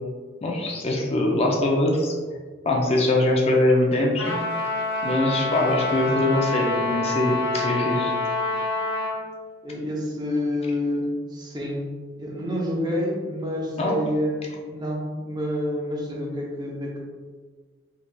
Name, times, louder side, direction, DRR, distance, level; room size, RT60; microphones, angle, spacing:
voice 1, 0.4-2.1 2.7-4.4 5.0-8.1 13.8-14.0, left 1 dB, 35° left, -1 dB, 0.4 m, -22 dB
Trumpet, 4.2-9.2, left 2 dB, 55° left, 0.8 m, -27 dB
voice 2, 9.6-11.8 12.2-17.0, left 1 dB, 20° right, -2 dB, 0.6 m, -28 dB
3.7 x 3.2 x 2.2 m, 1.5 s
head